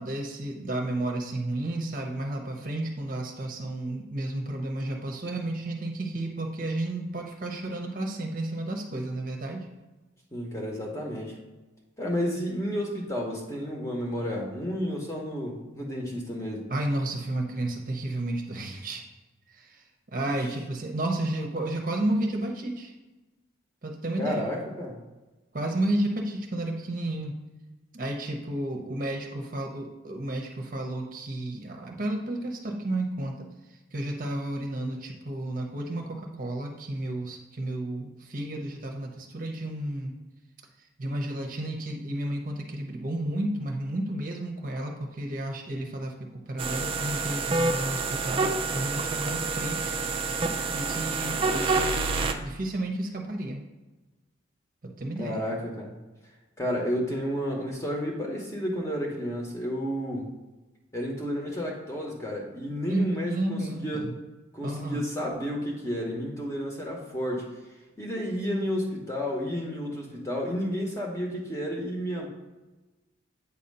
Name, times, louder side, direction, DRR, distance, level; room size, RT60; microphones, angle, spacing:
voice 1, 0.0-9.7 16.7-19.0 19.5-19.8 20.1-22.9 23.8-24.4 25.5-27.3 27.9-33.5 33.9-40.1 41.0-53.7 54.8-55.4 62.9-64.1 64.6-65.0, right 1 dB, 45° right, 1 dB, 0.7 m, -32 dB
voice 2, 10.3-11.4 12.0-16.7 20.2-20.5 24.2-25.0 55.2-55.9 56.6-60.3 60.9-64.1 64.5-67.5 68.0-72.3, equal, 15° left, -1 dB, 0.9 m, -31 dB
sound 1, 46.6-52.3, right 3 dB, 25° right, 0.4 m, -28 dB
8.2 x 2.8 x 5.3 m, 1.1 s
head